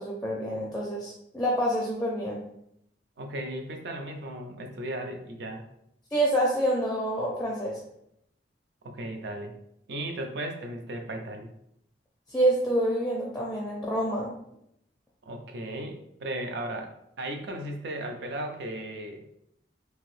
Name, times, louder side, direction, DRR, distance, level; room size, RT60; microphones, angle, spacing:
voice 1, 0.0-2.5 6.1-7.8 12.3-14.3, right 1 dB, 5° left, -3 dB, 0.4 m, -27 dB
voice 2, 3.2-5.6 8.8-9.6 9.9-11.5 15.3-19.2, right 1 dB, 65° right, 4 dB, 0.5 m, -36 dB
2.9 x 2.6 x 3.1 m, 0.76 s
head